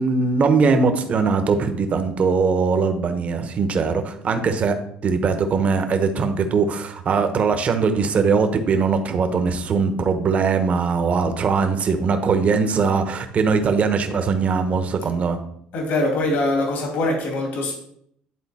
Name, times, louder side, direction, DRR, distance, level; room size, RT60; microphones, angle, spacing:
voice 1, 0.0-4.8 5.0-15.4, right 5 dB, 40° right, 7 dB, 1.0 m, -21 dB
voice 2, 15.7-17.8, left 2 dB, 65° left, 1 dB, 2.4 m, -23 dB
10.5 x 3.8 x 4.3 m, 0.69 s
cardioid pair, 100°, 3 cm